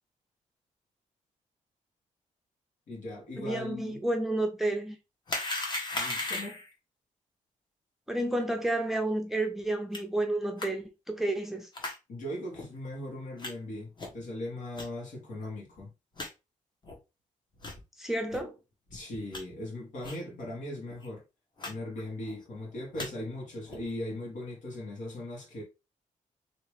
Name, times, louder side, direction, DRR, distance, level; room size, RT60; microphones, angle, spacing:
voice 1, 2.9-4.0 6.0-6.6 12.1-15.9 18.9-21.2 21.7-25.6, left 1 dB, 75° left, 1.8 m, -39 dB
voice 2, 3.4-5.0 8.1-11.7 18.0-18.5, right 1 dB, ahead, 0.6 m, -30 dB
sound 1, 5.3-6.7 9.9-10.0 10.6-10.7 11.7-12.0 12.5-12.6 13.4-13.5 14.0-14.2 14.7-14.9 15.4-15.5 15.8-15.9 16.2-16.3 16.8-17.0 17.6-17.8 18.3-18.4 18.9-19.4 20.0-20.2 20.5-20.6 20.9-21.1 21.6-21.7 22.0-22.4 22.8-23.1 23.7-23.9, left 2 dB, 35° left, 1.0 m, -36 dB
2.9 x 2.9 x 3.2 m
cardioid pair, 120°, 13 cm